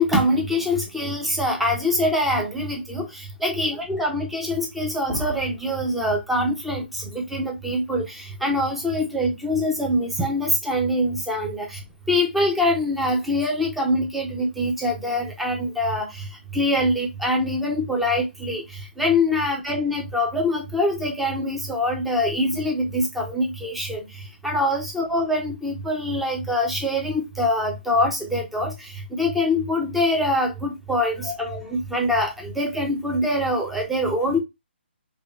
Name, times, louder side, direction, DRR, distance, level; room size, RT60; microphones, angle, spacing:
voice 1, 0.0-11.8 12.1-16.3 16.5-18.6 19.0-24.0 24.4-34.4, left 1 dB, ahead, 0.5 m, -24 dB
5.0 x 2.3 x 2.3 m
hypercardioid pair, 170°, 6 cm